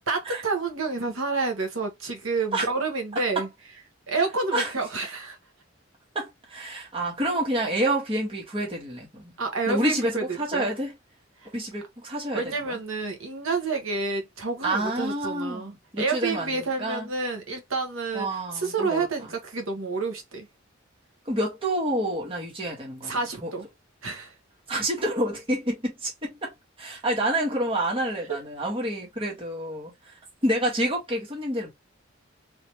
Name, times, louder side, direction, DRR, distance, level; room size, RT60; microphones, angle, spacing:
voice 1, 0.1-3.5 4.1-5.4 9.4-10.2 10.5-10.7 11.4-11.5 12.3-20.5 23.0-23.6 24.0-24.3 28.3-28.4, right 3 dB, 85° right, 1.2 m, -29 dB
voice 2, 6.2-9.4 9.7-10.9 11.5-12.8 14.6-17.1 18.1-19.1 21.3-23.5 24.7-30.1 30.4-31.7, right 1 dB, 30° right, 1.6 m, -28 dB
3.3 x 2.9 x 3.0 m
head